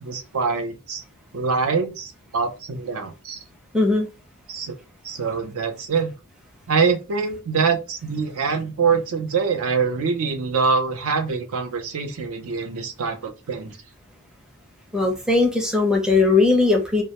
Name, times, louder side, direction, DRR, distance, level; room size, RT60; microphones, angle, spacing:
voice 1, 0.0-1.0 1.3-3.4 4.5-4.8 5.0-6.1 6.7-13.8, right 5 dB, 65° right, 0.5 m, -24 dB
voice 2, 3.7-4.1 14.9-17.0, left 3 dB, 5° right, 0.5 m, -19 dB
2.1 x 2.1 x 2.8 m
head